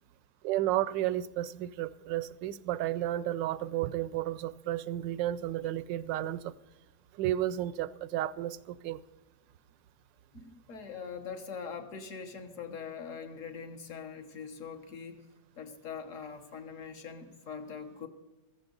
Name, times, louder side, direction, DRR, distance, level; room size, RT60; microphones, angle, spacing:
voice 1, 0.4-6.5 7.1-9.0, right 13 dB, 85° right, 1.3 m, -32 dB
voice 2, 10.3-15.3 15.6-18.1, left 6 dB, 50° left, 1.4 m, -42 dB
16.0 x 14.5 x 3.9 m
omnidirectional pair, 1.9 m